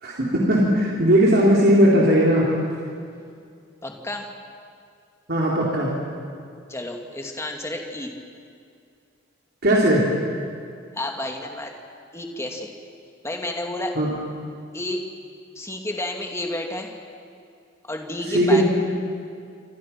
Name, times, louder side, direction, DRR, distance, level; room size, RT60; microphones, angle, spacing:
voice 1, 0.0-2.4 5.3-5.9 9.6-10.0 14.0-14.1 18.3-18.6, equal, 55° right, -4 dB, 3.8 m, -18 dB
voice 2, 3.8-4.3 6.7-8.1 10.9-11.8 12.1-12.7 13.2-14.0 14.7-15.0 15.5-16.9 17.9-18.6, left 1 dB, 15° left, 2 dB, 2.6 m, -30 dB
27.0 x 26.0 x 6.0 m, 2.3 s
head